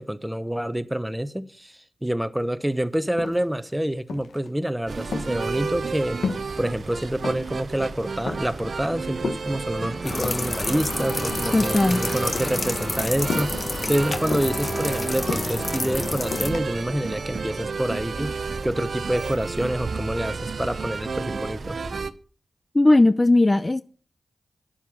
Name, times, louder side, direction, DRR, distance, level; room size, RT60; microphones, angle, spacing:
voice 1, 0.0-6.2 6.6-18.4 18.6-21.8, right 1 dB, 10° right, 0.9 m, -27 dB
sound 1, 2.7-2.8 3.0-3.7 4.1-4.5 4.8-6.6 6.9-7.6 8.0-8.6 9.2-10.5 11.2-12.0 12.2-12.6 13.3-13.7 14.3-15.7 16.3-16.7, left 5 dB, 85° left, 1.1 m, -33 dB
sound 2, 4.9-22.1, right 4 dB, 70° right, 0.7 m, -32 dB
sound 3, 10.0-16.5, left 2 dB, 50° left, 1.4 m, -29 dB
voice 2, 11.5-12.0 22.7-23.8, left 2 dB, 30° left, 0.5 m, -17 dB
10.0 x 7.4 x 7.2 m
cardioid pair, 45°, 0 cm